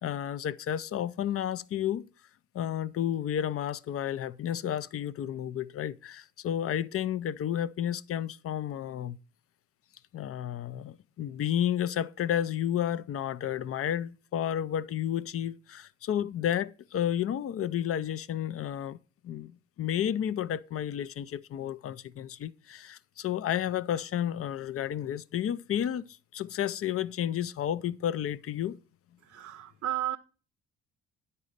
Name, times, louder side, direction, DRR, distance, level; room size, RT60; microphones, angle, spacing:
voice 1, 0.0-2.1 2.5-9.2 10.1-19.5 19.8-26.0 26.3-28.8, left 10 dB, 50° left, 0.5 m, -31 dB
voice 2, 29.2-30.2, right 13 dB, 50° right, 0.5 m, -33 dB
9.9 x 4.2 x 6.4 m
cardioid pair, 90°, 30 cm